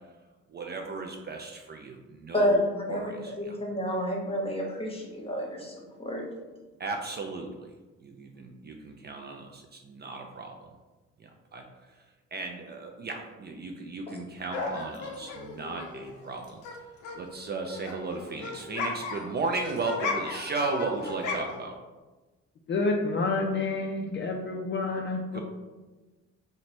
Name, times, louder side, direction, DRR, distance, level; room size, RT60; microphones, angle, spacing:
voice 1, 0.5-2.6 2.9-3.6 6.8-7.7 8.0-10.6 11.2-11.6 12.3-16.6 17.1-21.8 25.3-25.4, right 3 dB, 35° right, 3 dB, 0.4 m, -35 dB
voice 2, 2.3-6.2, equal, 20° left, -1 dB, 0.9 m, -29 dB
sound 1, 14.5-16.8 17.0-21.7, left 3 dB, 85° left, 0.6 m, -36 dB
voice 3, 22.7-25.4, left 3 dB, 40° left, 1 dB, 0.4 m, -29 dB
3.0 x 2.1 x 4.1 m, 1.2 s
cardioid pair, 90°, 30 cm